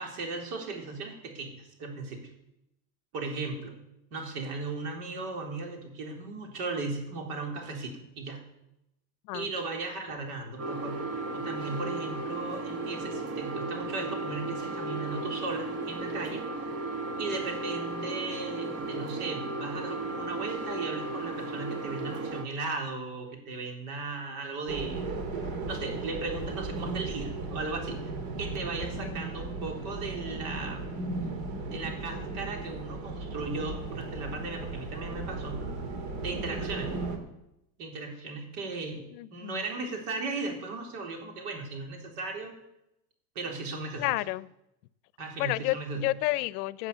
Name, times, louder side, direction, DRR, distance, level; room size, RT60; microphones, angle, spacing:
voice 1, 0.0-2.3 3.1-3.7 4.1-8.4 9.3-16.4 17.2-25.1 25.7-28.1 28.4-30.9 31.7-35.6 36.2-36.9 37.8-39.0 39.3-42.5 43.4-44.1 45.2-46.1, right 3 dB, 65° right, 1 dB, 4.0 m, -36 dB
sound 1, 10.6-22.5, right 2 dB, 30° right, 1.4 m, -35 dB
sound 2, 24.7-37.2, right 3 dB, 50° right, 2.7 m, -36 dB
voice 2, 39.1-39.6 44.0-44.5 45.4-46.9, left 19 dB, 70° left, 18 dB, 0.7 m, -31 dB
16.0 x 7.9 x 6.8 m, 0.84 s
supercardioid pair, 155°, 48 cm